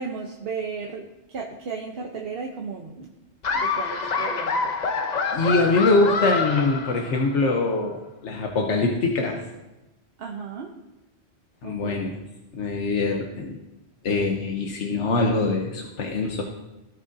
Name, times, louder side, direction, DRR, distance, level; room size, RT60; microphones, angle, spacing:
voice 1, 0.0-3.1 3.5-4.7 10.2-10.7 11.6-12.0, right 5 dB, 60° right, 0 dB, 1.0 m, -34 dB
Laughter, 3.4-7.5, left 4 dB, 45° left, 0.8 m, -26 dB
voice 2, 5.3-9.4 11.6-12.2 12.5-13.6 14.0-16.4, left 3 dB, 85° left, 1 dB, 1.2 m, -23 dB
16.5 x 6.3 x 2.7 m, 1.0 s
omnidirectional pair, 1.2 m